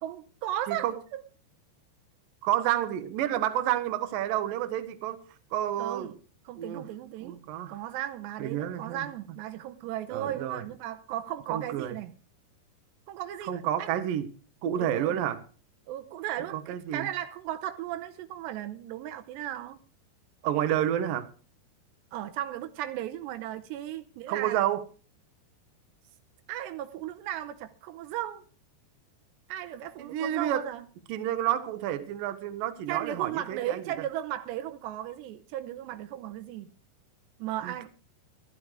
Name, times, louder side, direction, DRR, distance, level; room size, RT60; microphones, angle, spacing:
voice 1, 0.0-1.2 5.8-6.1 6.5-7.4 7.7-12.1 13.1-14.0 14.8-15.2 15.9-19.8 22.1-24.6 26.5-28.4 29.5-30.9 32.9-36.7 37.4-37.9, right 12 dB, 90° right, 3.1 m, -36 dB
voice 2, 0.7-1.0 2.4-5.2 5.5-6.2 6.6-6.9 7.2-7.8 8.4-9.1 10.1-10.6 11.5-12.0 13.4-14.3 14.6-15.4 16.5-17.1 20.4-21.3 24.3-24.9 30.0-30.7 31.1-33.8 37.6-37.9, right 11 dB, 70° right, 2.3 m, -30 dB
12.5 x 12.5 x 4.8 m
omnidirectional pair, 4.9 m